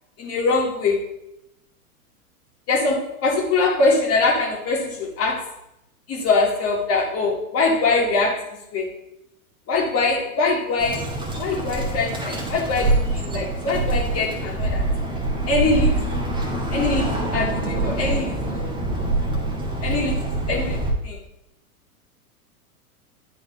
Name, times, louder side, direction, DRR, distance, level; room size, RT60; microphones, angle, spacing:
voice 1, 0.2-1.1 2.7-5.5 6.1-8.9 9.7-11.1 11.4-14.8 15.5-16.2 16.7-18.7 19.8-20.2 20.5-21.2, left 3 dB, 30° left, -1 dB, 2.3 m, -23 dB
Bird, 10.8-20.9, right 2 dB, 10° right, 1.4 m, -25 dB
10.5 x 3.8 x 3.6 m, 0.83 s
hypercardioid pair, 110°, 45 cm